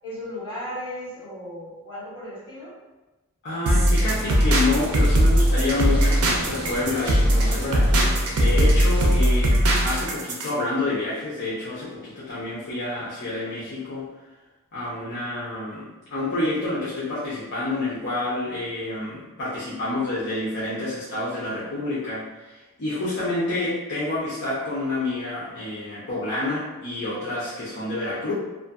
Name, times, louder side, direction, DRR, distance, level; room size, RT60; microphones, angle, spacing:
voice 1, 0.0-2.7, left 1 dB, 25° left, -12 dB, 1.5 m, -35 dB
voice 2, 3.4-14.1 14.7-28.3, left 2 dB, 55° left, -10 dB, 0.6 m, -28 dB
sound 1, 3.7-10.5, equal, 80° right, 0.5 m, -19 dB
sound 2, 3.9-9.4, equal, 20° right, 0.8 m, -35 dB
2.5 x 2.4 x 2.4 m, 1.1 s
head